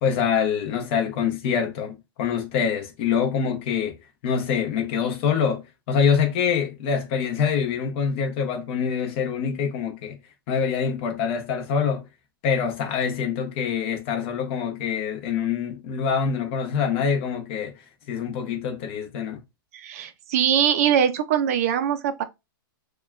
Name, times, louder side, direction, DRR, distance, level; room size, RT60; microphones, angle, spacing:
voice 1, 0.0-4.0 4.2-5.6 5.9-10.2 10.5-12.0 12.4-17.7 18.1-19.4, left 7 dB, 30° left, 0.7 m, -25 dB
voice 2, 19.7-22.2, right 9 dB, 40° right, 0.4 m, -22 dB
6.7 x 2.2 x 2.3 m
hypercardioid pair, 170°, 12 cm